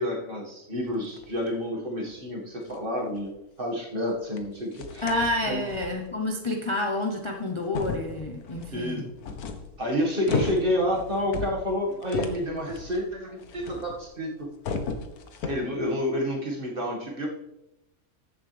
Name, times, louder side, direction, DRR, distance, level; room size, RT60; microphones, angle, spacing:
voice 1, 0.0-3.3 3.6-5.0 5.5-5.6 8.7-9.0 9.8-14.5 15.5-17.3, left 1 dB, 35° right, -1 dB, 2.1 m, -29 dB
sound 1, 0.8-1.6 2.1-2.2 2.6-2.8 3.2-3.3 4.4-4.5 4.7-6.1 7.0-7.1 7.6-14.1 14.4-15.7, left 4 dB, 90° left, 1.5 m, -34 dB
voice 2, 5.0-9.1, left 1 dB, 25° left, 1 dB, 0.8 m, -29 dB
14.5 x 7.1 x 3.4 m, 0.90 s
omnidirectional pair, 1.5 m